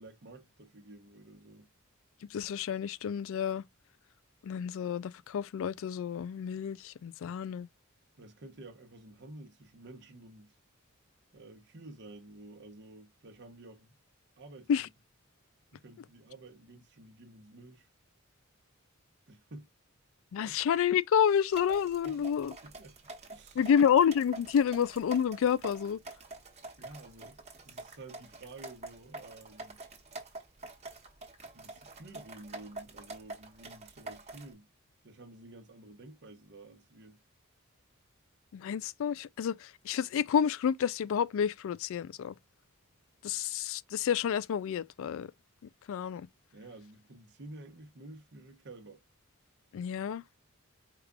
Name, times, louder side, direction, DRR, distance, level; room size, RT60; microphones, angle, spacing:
voice 1, 0.0-1.7 8.1-10.5 11.3-14.0 14.4-14.7 15.7-17.9 19.3-19.7 20.4-20.6 22.0-22.2 22.6-23.0 23.3-23.6 26.4-27.4 27.6-29.8 31.5-34.7 35.0-37.2 46.5-49.0, right 2 dB, 55° right, 0.9 m, -51 dB
voice 2, 2.3-3.6 4.4-7.7 14.7-14.9 20.3-22.5 23.6-26.0 38.5-42.4 43.2-45.3 45.9-46.3 49.7-50.2, left 8 dB, 65° left, 0.3 m, -29 dB
sound 1, 21.5-34.5, right 2 dB, 30° right, 1.2 m, -47 dB
4.9 x 2.4 x 3.5 m
head